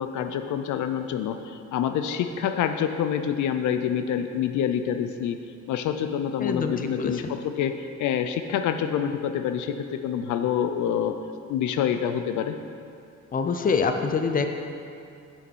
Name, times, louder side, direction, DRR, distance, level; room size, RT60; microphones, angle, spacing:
voice 1, 0.0-5.4 5.7-11.1 11.5-12.6, left 8 dB, 75° left, 8 dB, 0.5 m, -27 dB
voice 2, 6.4-6.7 7.0-7.1 13.3-14.5, left 5 dB, 30° left, 6 dB, 0.5 m, -24 dB
6.4 x 6.1 x 4.6 m, 2.5 s
cardioid pair, 90°, 30 cm